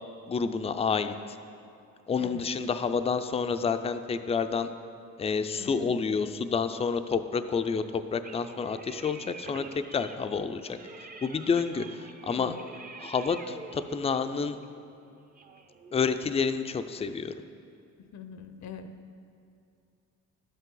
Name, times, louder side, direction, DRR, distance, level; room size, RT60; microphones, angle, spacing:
voice 1, 0.3-1.1 2.1-4.7 5.2-10.8 11.2-12.6 13.0-14.6 15.9-17.3, left 5 dB, 20° left, 10 dB, 0.4 m, -29 dB
voice 2, 5.6-6.0 12.3-12.6 18.1-18.9, left 6 dB, 65° left, 9 dB, 0.7 m, -43 dB
sound 1, 8.2-16.4, right 4 dB, 30° right, 0.7 m, -47 dB
11.0 x 8.2 x 3.8 m, 2.5 s
cardioid pair, 90°, 30 cm